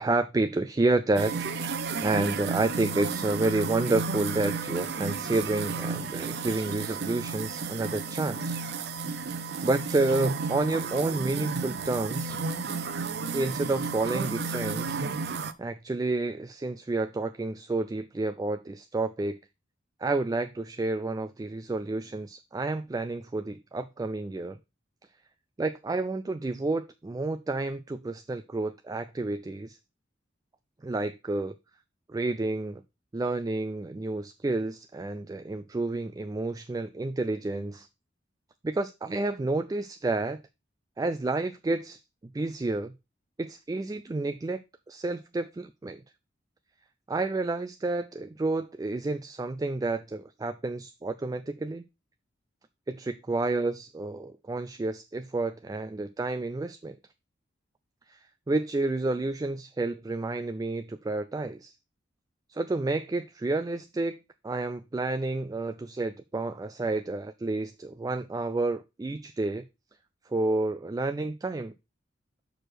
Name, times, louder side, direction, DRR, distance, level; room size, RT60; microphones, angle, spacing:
voice 1, 0.0-1.3 2.0-8.6 9.6-12.4 13.3-15.0 15.6-19.4 20.0-24.6 25.6-29.8 30.8-31.5 32.1-32.8 33.1-37.9 38.6-40.4 41.0-42.0 42.3-42.9 43.4-44.6 44.9-46.0 47.1-51.8 52.9-57.0 58.1-58.2 58.5-61.7 62.5-69.6 70.3-71.7, right 2 dB, 20° right, 0.3 m, -30 dB
sound 1, 1.2-15.5, right 4 dB, 60° right, 0.6 m, -32 dB
6.3 x 4.9 x 4.4 m
head